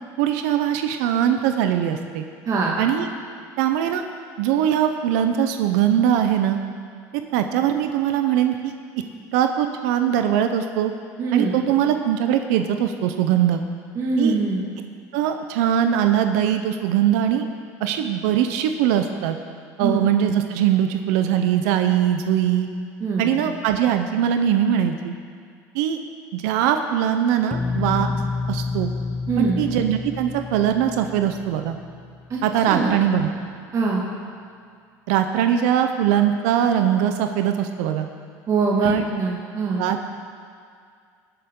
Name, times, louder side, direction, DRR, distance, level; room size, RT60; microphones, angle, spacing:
voice 1, 0.2-2.2 2.8-3.1 3.6-4.0 4.4-6.6 7.3-8.7 9.3-10.9 11.3-13.6 14.2-14.3 15.1-17.5 17.8-19.4 19.8-22.7 23.2-25.1 25.7-26.0 26.3-28.1 28.5-28.9 29.4-31.8 32.4-33.3 35.1-38.1 38.8-39.0 39.8-40.1, right 10 dB, 80° right, 7 dB, 0.7 m, -21 dB
voice 2, 2.5-2.8 11.2-11.5 14.0-14.6 19.8-20.0 23.0-23.3 29.3-29.6 32.3-32.4 32.7-32.9 33.7-34.0 38.5-39.8, right 4 dB, 40° right, -4 dB, 2.1 m, -23 dB
sound 1, 27.5-32.4, left 4 dB, 15° left, 0.4 m, -29 dB
19.0 x 8.0 x 3.8 m, 2.2 s
supercardioid pair, 105°, 9 cm